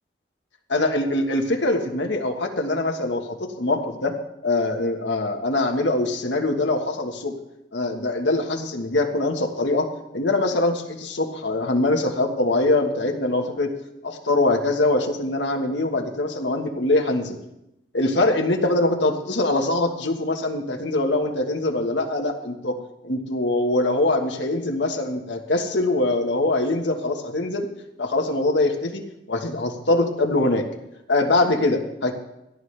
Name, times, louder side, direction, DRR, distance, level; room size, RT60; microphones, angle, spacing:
voice 1, 0.7-4.1 4.4-7.3 7.7-13.7 14.0-17.4 17.9-27.7 28.0-29.0 29.3-30.7 31.1-32.1, left 2 dB, 70° left, 3 dB, 1.5 m, -23 dB
17.0 x 11.5 x 3.4 m, 0.86 s
head